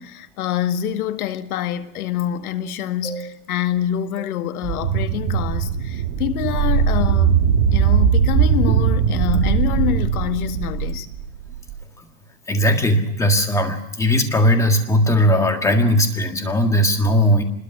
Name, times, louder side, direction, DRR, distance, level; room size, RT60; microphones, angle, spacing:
voice 1, 0.0-7.4 7.7-11.1, left 11 dB, 65° left, 2.1 m, -26 dB
sound 1, 4.6-11.7, right 7 dB, 35° right, 2.0 m, -19 dB
voice 2, 12.5-17.4, equal, 5° left, 1.8 m, -18 dB
25.0 x 21.5 x 6.1 m
supercardioid pair, 165°, 47 cm